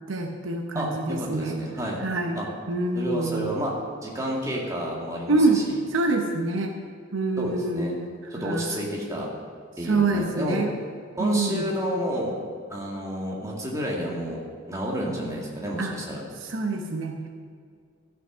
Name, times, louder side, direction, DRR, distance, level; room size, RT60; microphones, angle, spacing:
voice 1, 0.1-1.6 2.0-2.4 2.7-3.5 5.3-5.6 5.9-6.7 7.1-8.8 9.8-10.7 11.2-11.6 15.8-15.9 16.4-17.3, right 2 dB, 65° right, 3 dB, 0.9 m, -26 dB
voice 2, 0.7-2.0 2.4-2.5 3.0-3.7 4.0-5.4 7.4-7.9 8.3-9.3 9.8-10.6 11.2-12.4 12.7-16.2, equal, 15° right, -3 dB, 2.0 m, -30 dB
13.5 x 6.6 x 6.1 m, 2.1 s
head